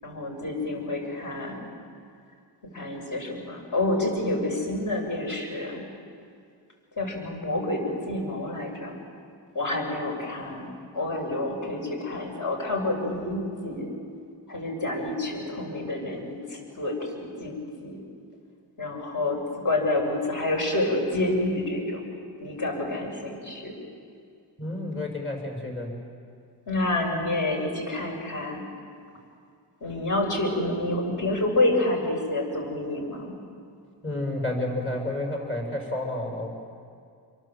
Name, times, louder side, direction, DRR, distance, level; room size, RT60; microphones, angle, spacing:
voice 1, 0.0-1.7 2.7-5.8 7.0-9.0 9.5-13.9 14.5-18.0 18.8-22.0 22.4-23.8 26.7-28.6 29.8-33.3, left 2 dB, 50° left, 1 dB, 7.0 m, -28 dB
voice 2, 24.6-25.9 34.0-36.5, left 1 dB, 30° left, 0 dB, 7.0 m, -30 dB
27.5 x 23.5 x 7.7 m, 2.4 s
cardioid pair, 120°, 41 cm